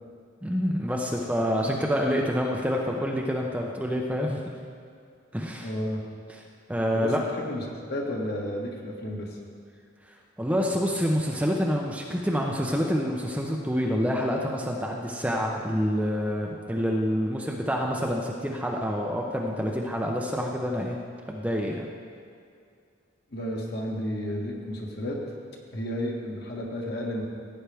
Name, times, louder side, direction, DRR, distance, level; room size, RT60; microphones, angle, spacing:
voice 1, 0.4-4.4 5.3-5.7 6.7-7.2 10.4-21.0 21.3-21.9, equal, 5° right, -1 dB, 0.6 m, -27 dB
voice 2, 5.6-6.0 6.9-9.4 18.2-18.3 23.3-25.2 25.7-27.2, equal, 50° left, -1 dB, 1.6 m, -32 dB
16.0 x 8.9 x 3.5 m, 2.4 s
head